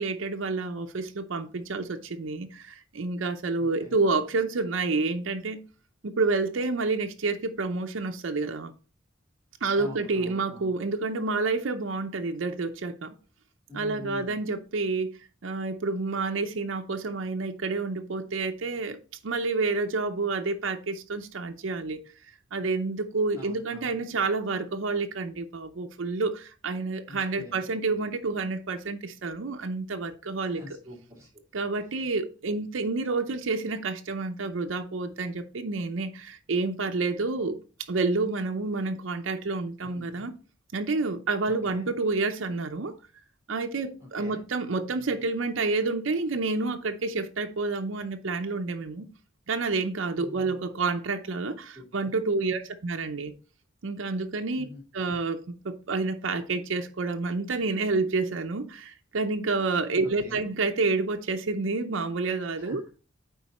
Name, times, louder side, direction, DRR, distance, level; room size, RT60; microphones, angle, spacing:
voice 1, 0.0-5.6 6.0-8.7 9.6-13.1 13.7-15.1 15.4-22.0 22.5-30.6 31.5-37.6 37.9-40.3 40.7-43.0 43.5-49.1 49.5-53.3 53.8-54.7 54.9-62.8, right 3 dB, 70° right, 0.6 m, -29 dB
voice 2, 3.6-4.0 9.8-10.8 13.7-14.4 23.3-24.0 27.1-27.6 30.4-31.3 39.8-40.2 41.5-41.9 44.0-44.4 50.2-50.5 51.7-51.8 54.6-54.8 60.0-60.4 62.5-62.9, left 1 dB, 15° right, 2.4 m, -45 dB
9.2 x 3.8 x 4.1 m
head